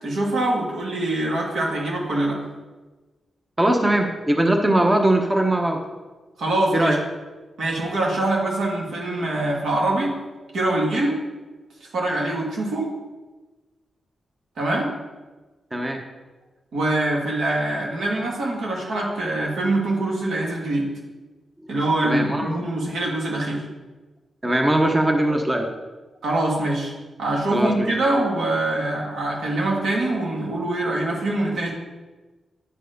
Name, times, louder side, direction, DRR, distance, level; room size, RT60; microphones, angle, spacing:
voice 1, 0.0-2.4 6.4-7.0 7.6-10.1 10.5-11.2 11.8-12.9 14.6-14.9 16.7-20.9 21.7-23.7 26.2-26.9 27.2-31.7, right 2 dB, 80° right, -2 dB, 2.3 m, -24 dB
voice 2, 3.6-5.8 6.7-7.0 15.7-16.0 22.0-22.6 24.4-25.7 27.5-27.9, right 1 dB, 20° right, 3 dB, 0.9 m, -20 dB
10.0 x 4.6 x 5.2 m, 1.2 s
cardioid pair, 70°, 0 cm